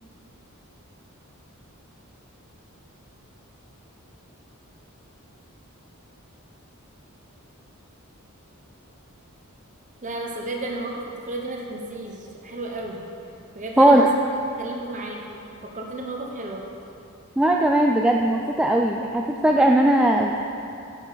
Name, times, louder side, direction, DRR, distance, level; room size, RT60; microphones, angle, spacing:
voice 1, 10.0-11.0 11.3-13.0 13.5-14.0 14.6-15.4 15.7-16.6, right 2 dB, 35° right, -1 dB, 1.0 m, -32 dB
voice 2, 13.8-14.1 17.4-20.5, right 1 dB, 5° right, 0 dB, 0.4 m, -18 dB
9.6 x 6.3 x 5.7 m, 2.6 s
head